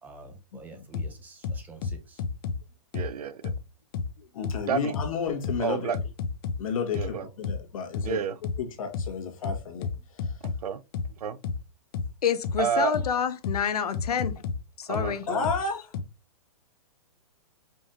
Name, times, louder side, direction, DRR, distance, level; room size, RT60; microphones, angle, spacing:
voice 1, 0.0-2.2, right 3 dB, 10° right, 0.6 m, -48 dB
sound 1, 0.9-1.1 1.4-2.6 2.9-3.1 3.4-3.6 3.9-4.1 4.4-4.6 4.9-5.1 5.4-5.6 5.9-6.6 6.9-7.1 7.4-7.6 7.9-8.1 8.4-8.6 8.9-9.1 9.4-10.6 10.9-11.1 11.4-11.6 11.9-12.1 12.4-12.6 12.9-13.1 13.4-13.6 13.9-14.6 14.9-15.1 15.4-15.6 15.9-16.0, left 5 dB, 40° left, 0.7 m, -30 dB
voice 2, 2.9-3.5 4.7-4.9 5.6-6.0 6.9-7.3 8.0-8.4 10.4-10.8 11.2-11.4 12.6-12.9 14.9-15.5, right 7 dB, 85° right, 0.6 m, -29 dB
voice 3, 4.2-6.0 6.6-8.2 8.6-10.4 15.3-15.9, left 5 dB, 65° left, 1.7 m, -32 dB
voice 4, 12.2-14.4 14.8-15.3, left 8 dB, 90° left, 0.8 m, -28 dB
5.3 x 3.6 x 2.7 m
hypercardioid pair, 155°, 19 cm